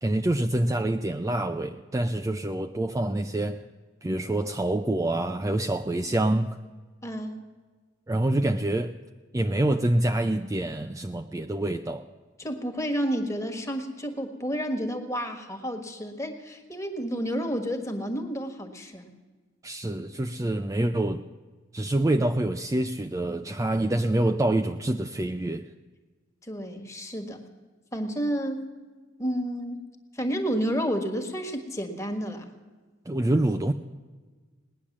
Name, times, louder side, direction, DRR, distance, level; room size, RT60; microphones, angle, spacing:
voice 1, 0.0-3.7 4.0-6.6 8.1-9.0 9.3-12.1 19.6-21.2 21.7-25.7 33.1-33.7, right 1 dB, 15° right, 6 dB, 0.4 m, -26 dB
voice 2, 7.0-7.4 12.4-19.1 26.4-27.4 27.9-28.6 29.2-29.9 30.1-32.5, equal, 15° left, 5 dB, 1.5 m, -30 dB
19.0 x 10.0 x 7.3 m, 1.4 s
head